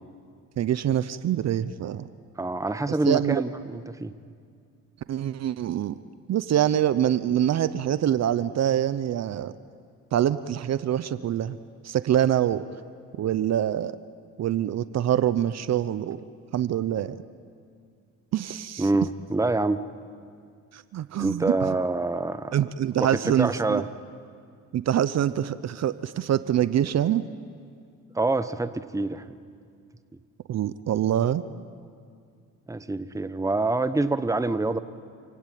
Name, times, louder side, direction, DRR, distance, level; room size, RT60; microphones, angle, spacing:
voice 1, 0.6-2.1 3.0-3.4 5.1-6.0 6.3-9.5 10.1-11.6 11.8-12.6 13.2-14.0 14.4-16.2 16.5-17.2 18.3-18.9 20.7-21.7 22.5-23.8 24.7-27.2 30.5-31.4, right 11 dB, 55° right, 14 dB, 0.8 m, -25 dB
voice 2, 2.4-4.1 18.8-19.8 21.2-22.6 23.0-23.9 28.1-29.4 32.7-34.8, right 2 dB, 10° right, 12 dB, 1.0 m, -26 dB
28.5 x 16.5 x 9.2 m, 2.2 s
supercardioid pair, 80°, 32 cm